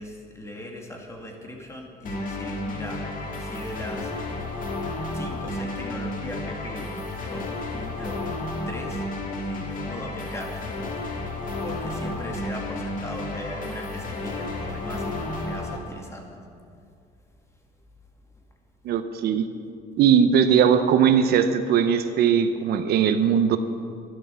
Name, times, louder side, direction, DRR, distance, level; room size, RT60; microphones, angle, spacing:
voice 1, 0.0-3.1 3.4-4.1 5.1-8.3 8.7-9.0 9.4-10.7 11.6-16.4, equal, 15° left, 1 dB, 2.3 m, -39 dB
sound 1, 2.1-15.8, left 2 dB, 50° left, 2.2 m, -32 dB
voice 2, 18.8-19.5 20.0-23.6, right 8 dB, 70° right, 9 dB, 0.9 m, -19 dB
12.5 x 11.0 x 7.0 m, 2.3 s
cardioid pair, 110°, 17 cm